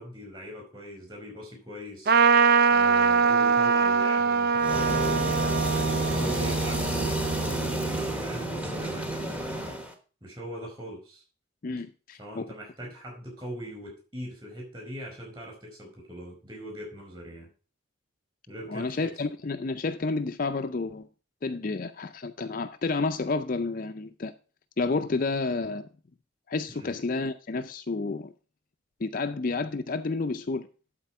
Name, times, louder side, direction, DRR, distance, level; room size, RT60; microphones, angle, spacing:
voice 1, 0.0-2.1 2.7-5.2 5.7-9.5 10.2-11.2 12.2-17.5 18.5-19.1 26.7-27.0, equal, 25° right, 4.9 m, -41 dB
Trumpet, 2.1-7.9, right 5 dB, 45° right, 0.4 m, -23 dB
sound 1, 4.6-9.9, right 2 dB, 5° right, 1.1 m, -29 dB
voice 2, 11.6-12.5 18.7-21.1 21.4-24.3 24.8-25.9 26.5-28.3 29.0-30.7, left 3 dB, 40° left, 0.5 m, -30 dB
11.5 x 4.4 x 5.5 m
head